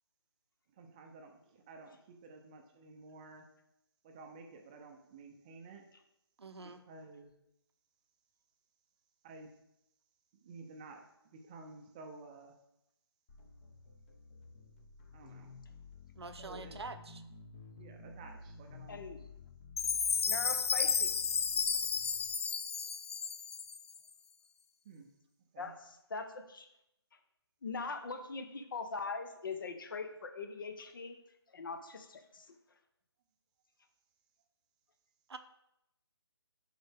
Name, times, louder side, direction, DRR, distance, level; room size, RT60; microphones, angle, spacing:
voice 1, 0.8-3.5 4.0-5.8 6.6-7.3 9.2-9.5 10.4-12.5 15.1-15.5 16.4-16.8 17.8-19.0 24.8-25.1 25.5-25.7, right 3 dB, 15° right, 3 dB, 0.6 m, -52 dB
voice 2, 6.4-6.8 16.2-17.2 35.3-35.4, right 4 dB, 75° right, 9 dB, 0.7 m, -45 dB
sound 1, 13.3-22.4, left 4 dB, 20° left, 0.7 m, -53 dB
voice 3, 18.9-19.2 20.3-21.1 25.6-26.7 27.6-31.2 31.5-32.5, left 4 dB, 50° left, 8 dB, 0.9 m, -41 dB
Chime, 19.8-24.0, left 6 dB, 75° left, 0.4 m, -32 dB
10.5 x 4.0 x 3.5 m, 0.83 s
hypercardioid pair, 160°, 14 cm